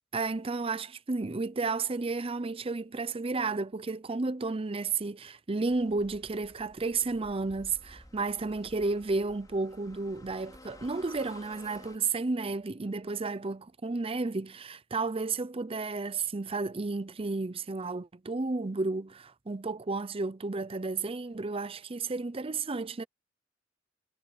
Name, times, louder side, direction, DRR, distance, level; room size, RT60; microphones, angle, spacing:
voice 1, 0.1-23.0, right 3 dB, 30° right, 0.6 m, -32 dB
sound 1, 5.7-12.0, left 1 dB, 20° left, 4.9 m, -53 dB
head